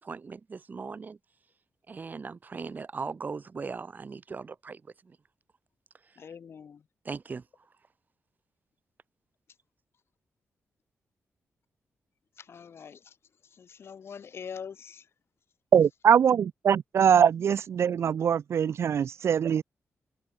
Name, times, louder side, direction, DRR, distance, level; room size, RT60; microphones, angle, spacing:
voice 1, 0.0-1.2 1.9-5.2 6.0-6.2 7.1-7.4, right 4 dB, 35° right, 3.4 m, -39 dB
voice 2, 6.2-6.8 12.4-13.2 13.4-15.1, left 7 dB, 55° left, 4.1 m, -44 dB
voice 3, 15.7-19.6, right 8 dB, 60° right, 0.5 m, -22 dB
wide cardioid pair, 150°, 5 cm